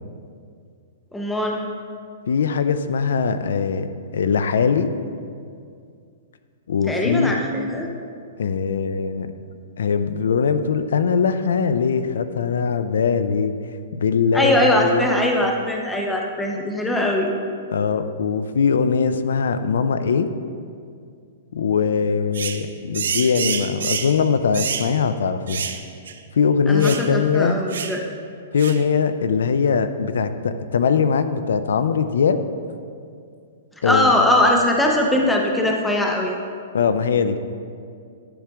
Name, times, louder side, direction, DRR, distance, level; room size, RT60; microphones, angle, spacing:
voice 1, 1.1-1.6 6.9-7.9 14.3-17.3 26.7-28.0 33.8-36.3, left 1 dB, 5° left, 0 dB, 0.5 m, -21 dB
voice 2, 2.3-4.9 6.7-7.4 8.4-9.3 9.8-13.5 13.9-15.0 17.7-20.3 21.5-25.7 26.3-27.6 28.5-32.4 33.8-34.1 36.7-37.4, left 6 dB, 85° left, 11 dB, 0.5 m, -21 dB
sound 1, 22.3-22.6 22.9-24.2 24.5-24.9 25.5-25.8 26.1-26.2 26.8-27.1 27.7-28.0 28.6-28.8, right 7 dB, 85° right, 0.5 m, -27 dB
10.0 x 5.0 x 3.5 m, 2.3 s
hypercardioid pair, 180°, 0 cm